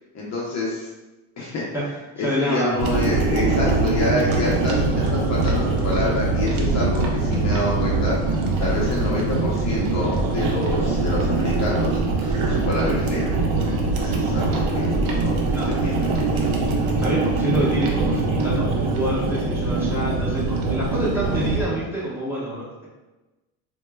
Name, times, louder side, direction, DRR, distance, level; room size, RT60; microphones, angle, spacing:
voice 1, 0.1-0.9 1.4-1.6 2.2-13.5 14.0-16.4, left 2 dB, 40° left, -4 dB, 0.8 m, -27 dB
voice 2, 2.2-2.8 15.5-15.7 17.0-22.9, equal, 5° right, -8 dB, 1.1 m, -27 dB
sound 1, 2.8-21.6, right 3 dB, 55° right, 0.8 m, -22 dB
4.3 x 2.3 x 2.3 m, 1.1 s
cardioid pair, 110°, 41 cm